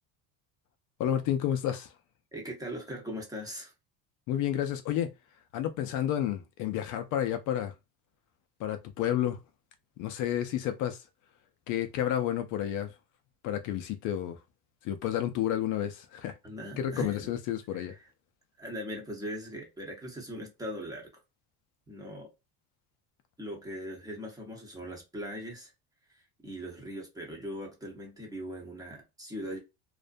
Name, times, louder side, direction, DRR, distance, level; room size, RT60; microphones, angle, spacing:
voice 1, 1.0-1.9 4.3-5.1 5.5-7.7 8.6-9.4 10.0-11.0 11.7-12.9 13.4-14.4 14.8-16.4 16.8-17.9, left 11 dB, 60° left, 0.5 m, -30 dB
voice 2, 2.3-3.7 16.4-17.3 17.7-18.1 18.6-21.1 21.9-22.3 23.4-25.7 26.4-29.6, equal, 10° right, 0.8 m, -40 dB
2.4 x 2.1 x 2.5 m
cardioid pair, 130°, 36 cm